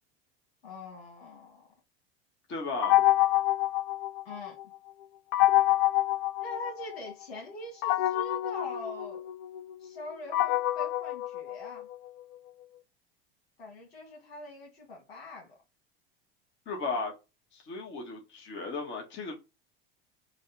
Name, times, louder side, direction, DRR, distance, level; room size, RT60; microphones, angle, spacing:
voice 1, 0.6-1.7 4.2-4.6 6.4-9.3 9.8-11.9 13.6-15.6, left 2 dB, 85° left, 1.9 m, -43 dB
voice 2, 2.5-3.0 16.7-17.1 17.5-19.3, left 3 dB, 40° left, 1.4 m, -35 dB
sound 1, 2.8-4.6 5.3-7.1 7.8-12.1, left 15 dB, 65° left, 0.5 m, -27 dB
4.0 x 2.4 x 3.4 m
hypercardioid pair, 90°, 30 cm